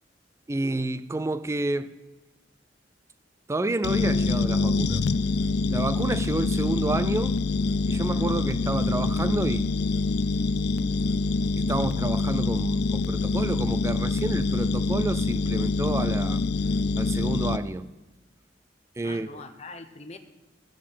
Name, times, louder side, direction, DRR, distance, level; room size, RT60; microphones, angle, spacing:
voice 1, 0.5-1.9 3.5-5.0 5.7-7.4 7.9-9.7 11.6-16.4 17.0-17.9 19.0-19.3, right 2 dB, 15° right, 0.3 m, -29 dB
sound 1, 3.8-17.6, left 3 dB, 60° left, 0.4 m, -25 dB
voice 2, 7.9-8.3 19.0-20.2, left 3 dB, 35° left, 0.7 m, -43 dB
13.0 x 4.9 x 7.1 m
head